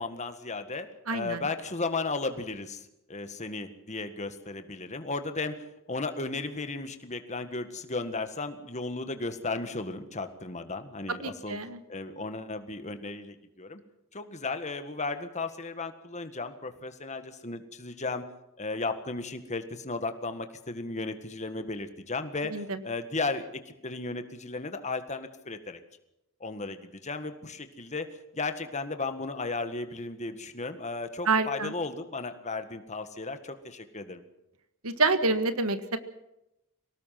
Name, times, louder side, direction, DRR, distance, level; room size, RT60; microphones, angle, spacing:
voice 1, 0.0-11.6 11.9-13.8 14.1-18.2 18.6-25.8 26.4-28.1 28.3-34.2, left 3 dB, 30° left, 8 dB, 1.8 m, -35 dB
voice 2, 1.1-1.4 11.1-11.8 22.5-22.8 31.3-31.7 34.8-36.0, right 3 dB, 75° right, 10 dB, 1.6 m, -27 dB
24.0 x 19.0 x 6.0 m, 0.87 s
head